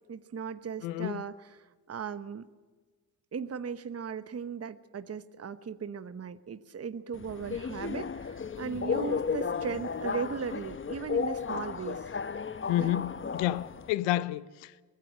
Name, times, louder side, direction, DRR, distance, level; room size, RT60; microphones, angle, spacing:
voice 1, 0.1-2.5 3.3-12.1 12.8-12.9, right 6 dB, 35° right, 1.1 m, -37 dB
voice 2, 0.8-1.2 12.7-14.7, left 14 dB, 80° left, 0.8 m, -30 dB
Subway metro underground, 7.1-13.9, left 5 dB, 30° left, 0.9 m, -34 dB
23.0 x 15.0 x 7.6 m
hypercardioid pair, 50°, 44 cm